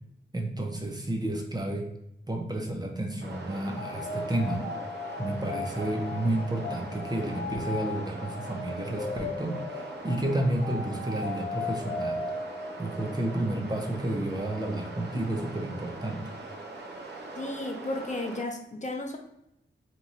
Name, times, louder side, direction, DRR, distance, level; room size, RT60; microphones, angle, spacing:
voice 1, 0.3-1.9 2.3-4.6 5.2-12.2 12.8-16.2, right 1 dB, 20° right, 1 dB, 0.6 m, -31 dB
sound 1, 3.2-18.4, right 2 dB, 55° right, 0.7 m, -42 dB
sound 2, 3.7-13.5, left 3 dB, 60° left, 1.2 m, -37 dB
voice 2, 17.4-19.2, left 2 dB, 35° left, 3 dB, 0.5 m, -33 dB
2.9 x 2.3 x 4.1 m, 0.82 s
wide cardioid pair, 90°, 21 cm